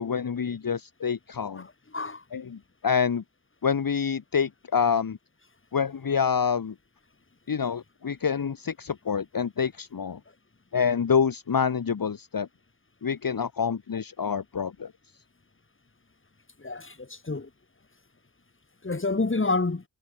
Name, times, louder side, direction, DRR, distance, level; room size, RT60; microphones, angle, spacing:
voice 1, 0.0-1.7 2.3-3.2 3.6-5.2 5.7-6.7 7.5-10.2 10.7-12.5 13.0-14.9, left 6 dB, 55° left, 1.2 m, -27 dB
voice 2, 1.6-2.2 16.6-17.5 18.8-19.8, left 3 dB, 30° left, 2.3 m, -29 dB
wide cardioid pair, 90°, 40 cm